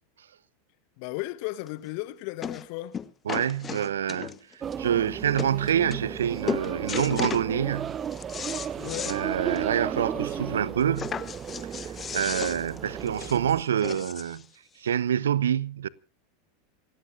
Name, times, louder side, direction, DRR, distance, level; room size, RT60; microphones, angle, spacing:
voice 1, 1.0-2.9 8.7-9.2 9.7-10.6, left 17 dB, 50° left, 1.1 m, -36 dB
sound 1, 1.7-1.8 2.4-2.7 2.9-4.5 5.1-5.2 5.4-5.5 5.9-6.2 6.5-7.5 7.9-9.2 9.6-9.7 10.0-10.1 11.0-14.4 15.2-15.3, left 7 dB, 25° left, 1.2 m, -35 dB
voice 2, 3.3-4.3 4.8-8.0 9.1-11.2 11.8-14.5 14.8-15.9, right 9 dB, 70° right, 0.7 m, -26 dB
sound 2, 4.6-13.6, right 8 dB, 30° right, 0.9 m, -35 dB
28.5 x 17.0 x 2.6 m
figure-of-eight pair, 85°, 0 cm